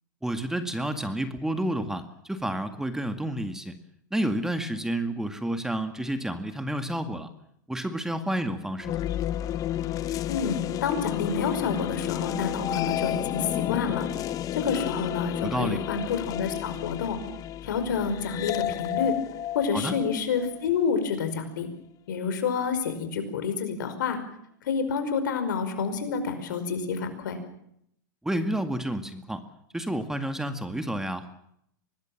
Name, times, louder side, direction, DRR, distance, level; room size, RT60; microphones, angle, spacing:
voice 1, 0.2-3.7 4.1-7.3 7.7-9.1 15.4-15.8 19.7-19.9 28.2-29.4 29.7-31.3, right 1 dB, 5° right, 8 dB, 2.0 m, -30 dB
sound 1, 8.8-21.0, left 12 dB, 35° left, 0.9 m, -31 dB
voice 2, 10.3-14.1 14.5-17.2 17.6-19.1 19.5-21.7 22.1-24.2 24.6-27.4, left 6 dB, 75° left, 9 dB, 5.2 m, -28 dB
24.5 x 20.0 x 7.4 m, 0.73 s
hypercardioid pair, 110°, 10 cm